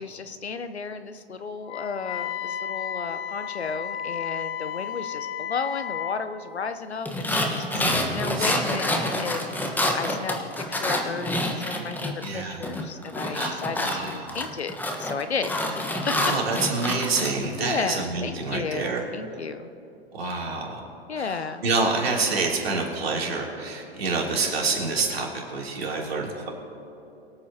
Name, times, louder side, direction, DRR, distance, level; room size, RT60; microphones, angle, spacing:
voice 1, 0.0-14.7 15.0-16.1 17.6-19.7 21.1-21.6, left 5 dB, 90° left, 10 dB, 0.8 m, -33 dB
Wind instrument woodwind instrument, 1.7-6.2, left 9 dB, 35° left, 0.6 m, -33 dB
sound 1, 7.1-12.3 12.6-17.3, left 1 dB, 5° left, 1.2 m, -27 dB
voice 2, 7.7-8.6 12.2-12.6 13.3-14.4 16.2-19.0 20.1-20.8 21.1-26.5, right 3 dB, 70° right, -1 dB, 3.1 m, -28 dB
23.0 x 8.4 x 2.9 m, 2.8 s
hypercardioid pair, 110°, 32 cm